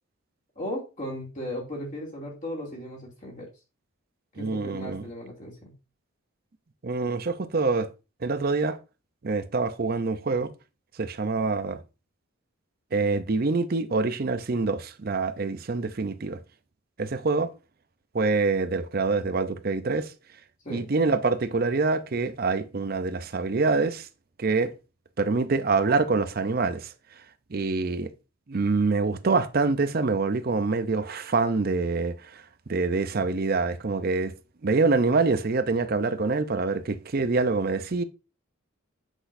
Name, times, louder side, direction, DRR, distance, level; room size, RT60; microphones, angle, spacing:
voice 1, 0.6-3.5 4.4-5.7 20.6-20.9, equal, 35° left, 2.5 m, -36 dB
voice 2, 4.4-5.1 6.8-7.9 8.2-8.8 9.2-10.5 11.0-11.8 12.9-16.4 17.0-17.5 18.1-20.1 20.7-24.1 24.4-24.7 25.2-26.9 27.5-28.1 28.5-32.4 32.7-34.3 34.6-38.0, right 3 dB, 45° right, 0.6 m, -25 dB
8.0 x 6.1 x 2.6 m
head